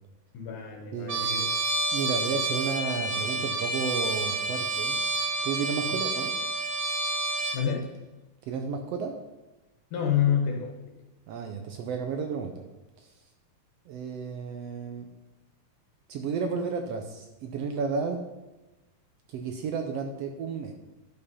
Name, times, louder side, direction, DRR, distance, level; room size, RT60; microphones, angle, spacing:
voice 1, 0.3-1.4 5.9-6.0 7.5-7.9 9.9-10.7, left 8 dB, 75° left, 0 dB, 2.6 m, -28 dB
voice 2, 0.9-1.5 1.9-5.0 5.4-6.4 8.5-9.2 11.3-12.6 13.0-13.1 13.9-15.1 16.1-18.2 19.3-20.7, right 5 dB, 75° right, 5 dB, 1.4 m, -32 dB
Trumpet, 1.1-7.6, right 2 dB, 55° right, 1.5 m, -29 dB
11.5 x 5.5 x 5.5 m, 1.1 s
omnidirectional pair, 3.6 m